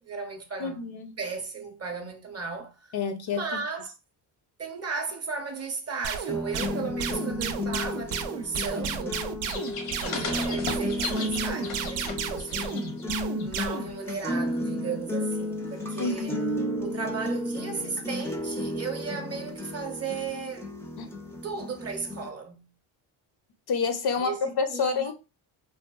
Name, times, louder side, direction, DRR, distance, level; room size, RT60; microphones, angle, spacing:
voice 1, 0.0-0.9 1.2-2.9 3.3-3.9 4.6-9.4 10.0-12.8 13.4-16.4 16.8-20.7 21.4-22.7 24.2-25.1, right 5 dB, 30° right, 0.6 m, -35 dB
voice 2, 0.6-1.1 2.9-3.4 16.0-16.5 21.0-21.1 23.7-25.1, left 5 dB, 55° left, 0.6 m, -28 dB
sound 1, 6.0-13.9, right 7 dB, 70° right, 0.5 m, -33 dB
sound 2, 6.3-22.3, left 1 dB, 5° left, 0.3 m, -33 dB
sound 3, 9.4-13.1 13.4-13.7 16.0-16.1, left 5 dB, 70° left, 0.9 m, -37 dB
2.7 x 2.2 x 2.3 m
cardioid pair, 100°, 49 cm